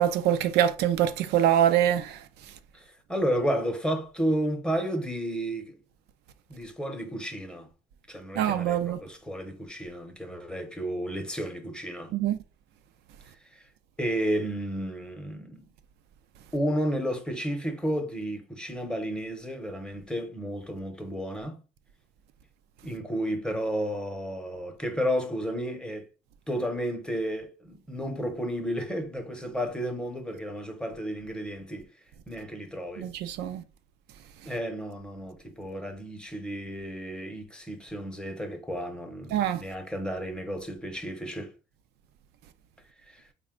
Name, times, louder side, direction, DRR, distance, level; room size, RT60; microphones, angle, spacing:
voice 1, 0.0-2.2 8.4-9.0 12.1-12.4 33.0-33.6 39.3-39.6, right 10 dB, 80° right, 0.5 m, -24 dB
voice 2, 2.7-5.8 6.5-7.7 8.1-12.1 13.5-13.6 14.0-15.7 16.5-21.6 22.8-26.1 26.5-31.9 32.3-33.1 34.4-41.5 43.1-43.3, equal, 5° left, 0.8 m, -32 dB
4.0 x 2.2 x 3.7 m
cardioid pair, 110°, 17 cm